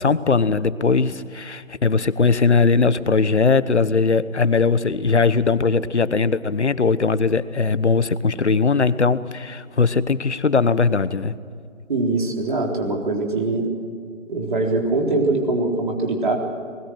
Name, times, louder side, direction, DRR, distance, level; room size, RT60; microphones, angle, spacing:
voice 1, 0.0-11.3, left 4 dB, 60° left, 15 dB, 1.1 m, -19 dB
voice 2, 11.9-13.7 14.3-16.3, right 2 dB, 40° right, 1 dB, 4.0 m, -22 dB
27.0 x 20.5 x 6.3 m, 2.3 s
figure-of-eight pair, 160°, 39 cm